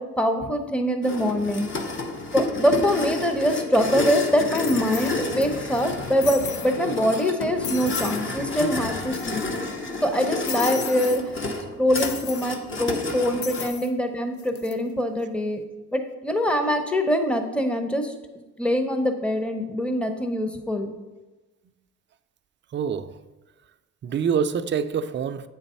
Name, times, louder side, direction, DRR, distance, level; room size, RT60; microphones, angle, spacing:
voice 1, 0.0-1.7 2.3-9.5 10.0-11.2 11.7-15.6 15.9-20.9, equal, 5° left, 0.7 m, -24 dB
sound 1, 1.0-13.7, left 2 dB, 40° left, 1.0 m, -30 dB
sound 2, 3.7-3.8 4.6-5.4 5.7-5.8 6.2-6.7 7.1-7.3 7.6-8.2 8.5-8.6 8.8-9.6 10.5-11.2 11.9-12.5 13.4-13.9 14.4-14.7, left 9 dB, 70° left, 0.7 m, -35 dB
voice 2, 22.7-23.2 24.0-25.5, right 7 dB, 40° right, 0.4 m, -26 dB
7.9 x 4.0 x 5.5 m
cardioid pair, 90°, 30 cm